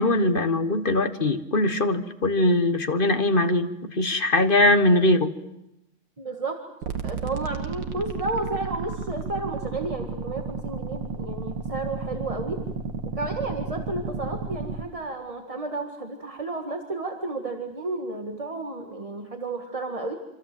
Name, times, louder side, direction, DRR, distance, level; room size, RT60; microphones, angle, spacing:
voice 1, 0.0-5.3, left 1 dB, 30° left, 9 dB, 1.2 m, -21 dB
voice 2, 6.2-6.6 7.0-12.6 13.0-20.1, right 3 dB, 20° right, 4 dB, 1.6 m, -32 dB
sound 1, 6.8-14.8, right 5 dB, 65° right, 2.1 m, -32 dB
27.0 x 26.5 x 7.7 m, 0.87 s
omnidirectional pair, 2.2 m